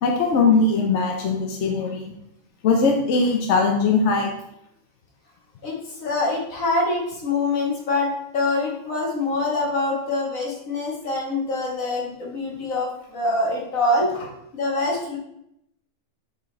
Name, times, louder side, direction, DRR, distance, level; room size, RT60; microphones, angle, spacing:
voice 1, 0.0-2.0 2.6-4.3, left 4 dB, 65° left, 2 dB, 1.0 m, -20 dB
voice 2, 5.6-14.1 14.5-15.2, left 2 dB, 80° left, -2 dB, 1.9 m, -25 dB
5.6 x 5.1 x 3.9 m, 0.79 s
omnidirectional pair, 1.4 m